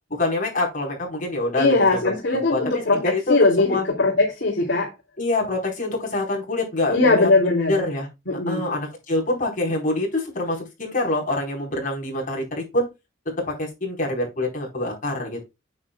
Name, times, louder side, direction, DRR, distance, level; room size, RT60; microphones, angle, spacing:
voice 1, 0.1-3.9 5.2-8.1 8.5-12.9 13.5-15.4, left 2 dB, 45° left, 4.4 m, -26 dB
voice 2, 1.6-4.9 6.9-7.7 8.3-8.6, left 3 dB, 65° left, 3.0 m, -20 dB
9.3 x 7.7 x 2.3 m
head